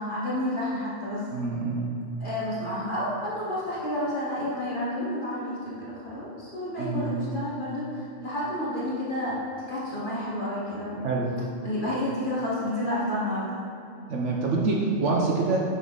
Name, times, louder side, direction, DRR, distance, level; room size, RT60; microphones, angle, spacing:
voice 1, 0.0-1.2 2.2-9.4 9.7-11.0 11.6-13.6, left 1 dB, 45° left, -8 dB, 1.7 m, -30 dB
voice 2, 1.3-2.0 6.8-7.1 11.0-11.3 14.1-15.6, right 3 dB, 70° right, -2 dB, 1.1 m, -26 dB
6.9 x 6.3 x 3.9 m, 2.7 s
omnidirectional pair, 1.3 m